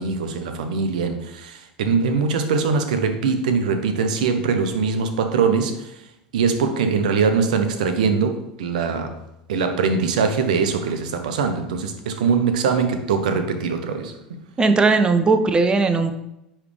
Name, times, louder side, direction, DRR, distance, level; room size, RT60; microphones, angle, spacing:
voice 1, 0.0-5.9 6.3-9.2 9.5-14.4, right 5 dB, 70° right, 7 dB, 0.8 m, -22 dB
voice 2, 14.6-16.1, right 3 dB, 20° right, 9 dB, 0.6 m, -18 dB
9.7 x 3.3 x 3.3 m, 0.88 s
hypercardioid pair, 80°, 4 cm